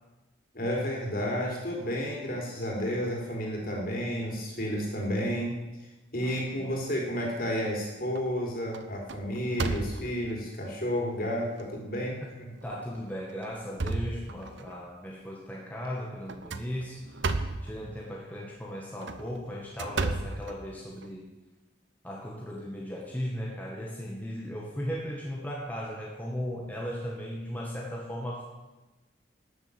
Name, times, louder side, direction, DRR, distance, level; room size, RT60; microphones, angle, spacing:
voice 1, 0.5-5.6 6.1-12.5, equal, 50° left, -1 dB, 4.1 m, -31 dB
voice 2, 6.2-6.8 12.6-17.0 17.6-21.3 22.0-28.4, equal, 10° left, -3 dB, 1.8 m, -37 dB
sound 1, 7.1-7.7 8.2-8.4 8.7-10.3 11.0-11.1 11.6-11.7 12.6-12.8 13.3-14.7 16.3-17.7 18.9-21.1, right 3 dB, 70° right, 0.9 m, -33 dB
13.0 x 8.2 x 8.7 m, 1.1 s
head